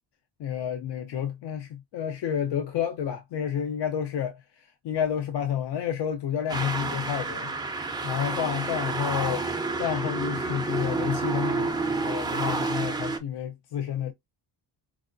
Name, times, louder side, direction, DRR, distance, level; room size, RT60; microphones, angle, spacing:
voice 1, 0.4-7.5 8.0-9.5 9.8-14.1, left 9 dB, 65° left, 0.5 m, -30 dB
sound 1, 6.5-13.2, right 3 dB, 10° right, 0.4 m, -29 dB
4.7 x 2.2 x 2.5 m
wide cardioid pair, 155°, 44 cm